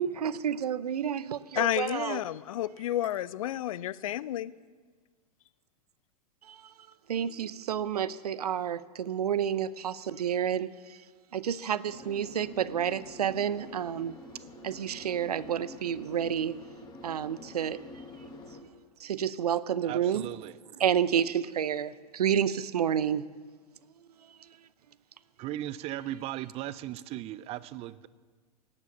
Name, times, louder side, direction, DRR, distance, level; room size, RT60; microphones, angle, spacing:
voice 1, 0.0-2.2 6.5-6.6 7.1-10.7 11.3-14.2 14.6-16.6 17.0-17.8 19.0-20.3 20.8-23.2, right 9 dB, 70° right, 0.6 m, -29 dB
voice 2, 1.6-4.5, left 13 dB, 55° left, 0.5 m, -31 dB
sound 1, 11.8-18.6, left 2 dB, 20° left, 1.7 m, -48 dB
voice 3, 19.8-20.6 25.4-28.1, right 14 dB, 30° right, 0.5 m, -37 dB
17.5 x 8.2 x 7.2 m
figure-of-eight pair, 100°, 20 cm